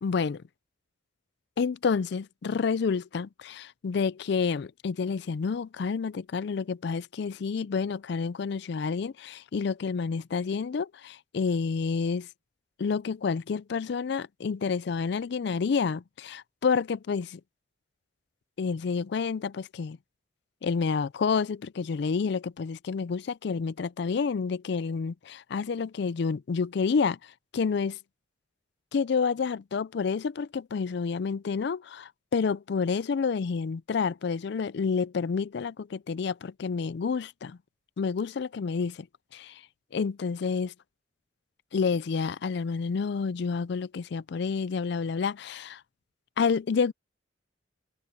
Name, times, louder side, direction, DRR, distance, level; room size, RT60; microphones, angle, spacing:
voice 1, 0.0-0.4 1.6-12.3 12.8-17.4 18.6-20.0 20.6-28.0 28.9-37.6 38.0-39.1 39.3-39.6 39.9-40.7 41.7-45.8 46.4-46.9, left 5 dB, 55° left, 0.4 m, -29 dB
head